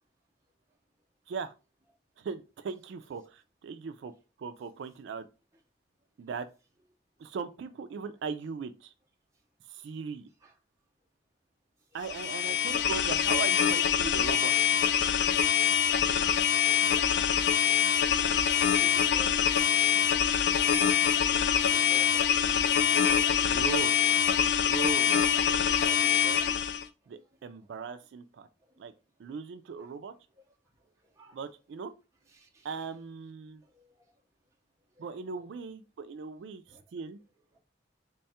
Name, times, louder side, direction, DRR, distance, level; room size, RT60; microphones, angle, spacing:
voice 1, 2.2-4.1 4.4-5.3 6.2-6.5 7.2-8.9 9.7-10.3 11.9-14.7 23.4-23.9 24.7-26.5 27.1-28.5 28.8-28.9 29.2-30.1 31.3-31.9 32.6-33.6 35.0-36.6 36.9-37.2, right 5 dB, 70° right, 0.3 m, -39 dB
sound 1, 12.0-26.8, left 8 dB, 60° left, 0.3 m, -25 dB
voice 2, 18.6-20.0 21.0-22.3 22.6-23.5 28.7-28.8 29.8-29.9 31.2-31.4 32.3-32.8 33.7-34.0 35.0-35.1 35.4-35.5 36.7-36.8, equal, 15° right, 0.6 m, -50 dB
3.5 x 2.3 x 4.0 m
head